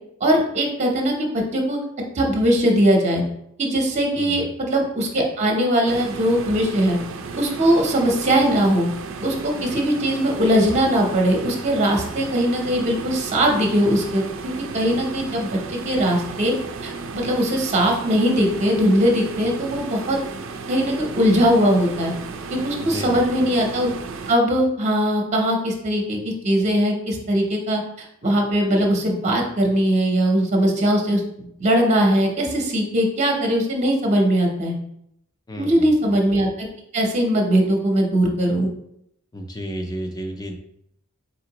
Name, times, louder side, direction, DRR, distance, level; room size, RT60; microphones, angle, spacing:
voice 1, 0.2-1.8 2.1-3.2 3.6-7.0 7.4-8.9 9.2-16.5 16.8-20.2 20.7-22.1 22.5-23.9 24.3-27.8 28.2-34.7 35.6-36.7 36.9-38.7, equal, 35° right, 1 dB, 0.7 m, -20 dB
voice 2, 4.1-4.5 22.8-23.4 35.5-36.2 39.3-40.6, equal, 20° left, 4 dB, 0.5 m, -32 dB
sound 1, 5.9-24.3, right 4 dB, 65° right, 0.4 m, -34 dB
4.1 x 3.6 x 2.9 m, 0.75 s
head